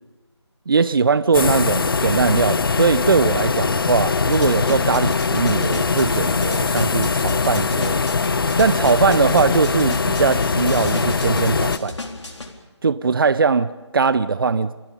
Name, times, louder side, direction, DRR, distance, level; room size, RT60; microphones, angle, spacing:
voice 1, 0.7-8.1 8.6-12.0 12.8-14.7, right 5 dB, 50° right, 0.8 m, -20 dB
sound 1, 1.3-11.8, left 4 dB, 50° left, 1.0 m, -21 dB
sound 2, 4.2-12.5, left 2 dB, 75° left, 4.1 m, -34 dB
30.0 x 25.0 x 5.4 m
figure-of-eight pair, 165°, 15 cm